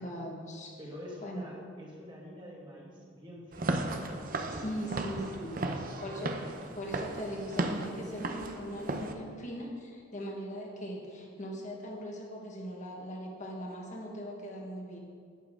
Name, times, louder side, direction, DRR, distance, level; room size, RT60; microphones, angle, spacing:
voice 1, 0.0-0.7 1.2-1.5 4.6-5.6 6.0-15.0, equal, 40° left, -1 dB, 1.6 m, -40 dB
voice 2, 0.8-5.1 5.6-5.9, equal, 25° right, -4 dB, 1.9 m, -47 dB
Walk footsteps / Siren, 3.5-9.1, right 2 dB, 50° right, 0.7 m, -35 dB
11.5 x 8.5 x 3.8 m, 2.1 s
head